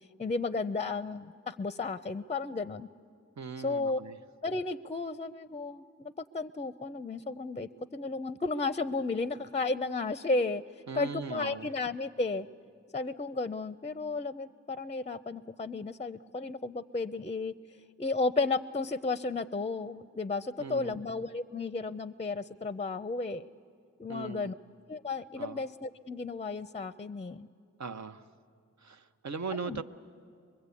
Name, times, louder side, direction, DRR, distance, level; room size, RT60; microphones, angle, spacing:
voice 1, 0.2-2.9 3.6-4.0 4.4-10.6 10.9-12.5 12.9-17.5 18.0-23.5 24.0-24.5 24.9-27.5 29.6-29.8, left 3 dB, 25° left, 14 dB, 0.5 m, -33 dB
voice 2, 3.4-4.2 10.9-11.7 20.6-21.0 24.1-24.5 25.4-25.6 27.8-28.3 28.8-29.8, right 5 dB, 70° right, 9 dB, 0.9 m, -39 dB
24.0 x 22.5 x 8.4 m, 2.2 s
cardioid pair, 55°, 29 cm